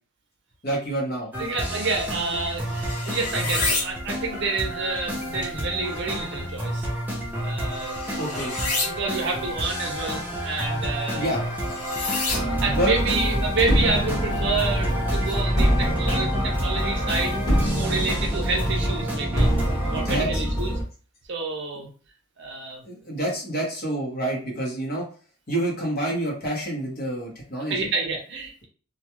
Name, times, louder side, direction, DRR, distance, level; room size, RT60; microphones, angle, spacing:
voice 1, 0.6-1.3 8.2-8.5 11.1-11.4 12.6-13.2 19.9-20.4 22.8-25.1 25.5-27.9, right 1 dB, 45° left, -2 dB, 0.9 m, -28 dB
sound 1, 1.3-20.2, equal, 10° right, 0.5 m, -30 dB
voice 2, 1.4-6.9 7.4-8.0 8.3-8.4 8.9-11.3 12.3-17.4 17.7-19.5 19.9-20.7 21.3-21.9 22.4-23.2 27.7-28.7, right 3 dB, 55° right, 2 dB, 0.6 m, -29 dB
sound 2, 1.9-15.4, left 3 dB, 90° left, 0.9 m, -34 dB
sound 3, 12.3-20.8, equal, 15° left, 1.1 m, -25 dB
2.2 x 2.2 x 2.9 m, 0.39 s
head